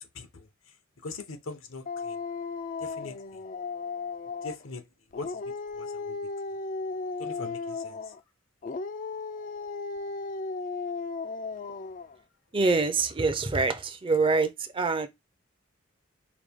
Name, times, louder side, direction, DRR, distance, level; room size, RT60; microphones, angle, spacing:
voice 1, 1.0-2.2 2.8-3.2 4.4-4.8 5.1-5.3 5.8-6.2 7.2-7.9, left 3 dB, 80° left, 0.8 m, -40 dB
Dog, 1.9-4.7 5.1-8.2 8.6-12.2, left 4 dB, 40° left, 0.3 m, -35 dB
voice 2, 12.5-15.1, right 4 dB, 25° right, 0.5 m, -25 dB
4.9 x 2.2 x 3.6 m
head